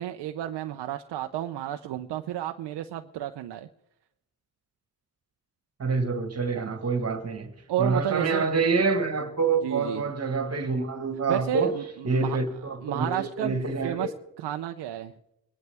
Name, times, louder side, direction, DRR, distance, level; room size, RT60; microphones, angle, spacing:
voice 1, 0.0-3.7 6.5-6.9 7.7-8.5 9.6-10.0 11.3-12.4 12.8-13.6 13.8-15.1, right 11 dB, 70° right, 0.7 m, -32 dB
voice 2, 5.8-7.5 7.8-11.8 12.0-14.1, right 4 dB, 35° right, 1.7 m, -27 dB
23.5 x 11.0 x 3.5 m
cardioid pair, 100°, 42 cm